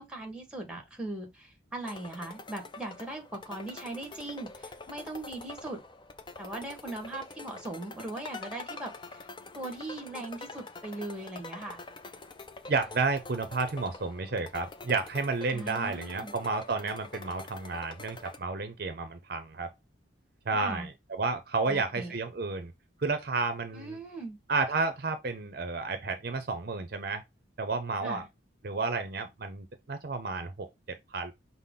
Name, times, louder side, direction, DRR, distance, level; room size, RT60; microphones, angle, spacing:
voice 1, 0.0-5.8 6.4-9.3 9.5-11.8 15.5-16.3 20.5-20.9 21.7-22.1 23.7-24.4 28.0-28.2, right 2 dB, 5° right, 1.0 m, -39 dB
sound 1, 1.8-18.4, left 3 dB, 25° left, 0.4 m, -46 dB
voice 2, 12.7-19.7 20.5-22.7 23.0-24.0 24.5-27.2 27.6-28.2 28.6-31.3, right 3 dB, 50° right, 0.6 m, -31 dB
5.7 x 2.0 x 3.6 m
head